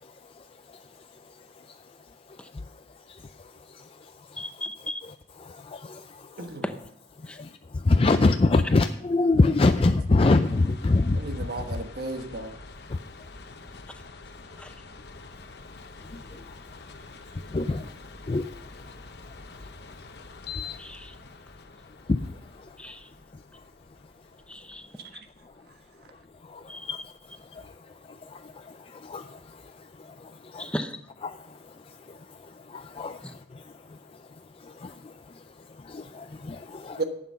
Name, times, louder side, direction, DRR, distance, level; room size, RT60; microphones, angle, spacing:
voice 1, 0.0-0.9 1.7-1.8 2.5-2.7 3.1-4.5 5.0-5.1 5.4-6.5 7.2-11.2 12.9-13.0 16.0-16.5 17.5-17.9 18.3-18.5 20.5-20.8 22.1-22.7 26.4-27.0 27.4-30.7 31.2-34.0 34.6-37.0, left 3 dB, 35° left, 0.4 m, -27 dB
voice 2, 4.4-5.0 6.6-6.7 7.3-7.4 14.6-14.7 20.8-21.1 22.8-23.1 24.5-24.9 25.1-25.2 26.7-26.9 30.6-30.9 33.2-33.3, left 1 dB, 5° left, 0.7 m, -36 dB
sound 1, 10.4-27.6, left 4 dB, 65° left, 0.9 m, -46 dB
voice 3, 11.1-12.5 25.0-25.1 37.0-37.1, right 3 dB, 60° right, 1.4 m, -33 dB
11.5 x 8.2 x 5.7 m
head